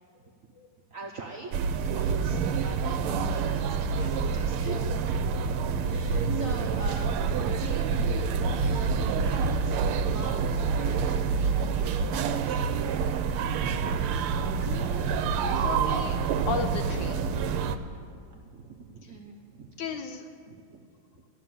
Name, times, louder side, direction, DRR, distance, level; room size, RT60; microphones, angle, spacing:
voice 1, 0.9-5.0 5.4-13.2 17.5-19.9 20.5-20.9, right 3 dB, 55° right, 0 dB, 0.9 m, -44 dB
sound 1, 1.5-17.8, right 5 dB, 80° right, 1.5 m, -27 dB
voice 2, 14.6-17.3 19.8-20.3, left 5 dB, 70° left, 7 dB, 1.2 m, -35 dB
13.5 x 6.7 x 9.3 m, 2.3 s
omnidirectional pair, 2.4 m